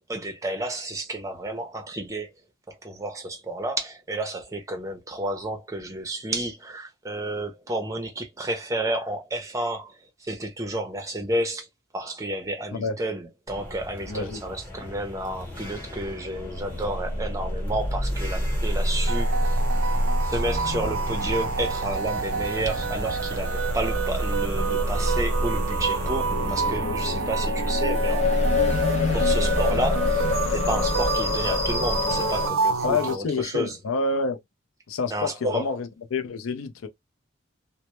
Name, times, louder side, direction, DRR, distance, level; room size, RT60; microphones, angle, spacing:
voice 1, 0.1-2.3 2.7-11.7 11.9-19.6 20.2-28.3 29.1-30.2 30.5-33.8 35.1-35.8, right 1 dB, 15° right, 0.5 m, -31 dB
sound 1, 13.5-27.7, left 1 dB, 10° left, 0.9 m, -40 dB
voice 2, 14.1-14.5 32.8-34.4 34.9-36.9, left 4 dB, 85° left, 0.5 m, -28 dB
sound 2, 15.6-32.5, left 2 dB, 35° left, 0.5 m, -27 dB
sound 3, 19.1-33.2, right 6 dB, 75° right, 0.3 m, -29 dB
2.1 x 2.0 x 2.9 m
head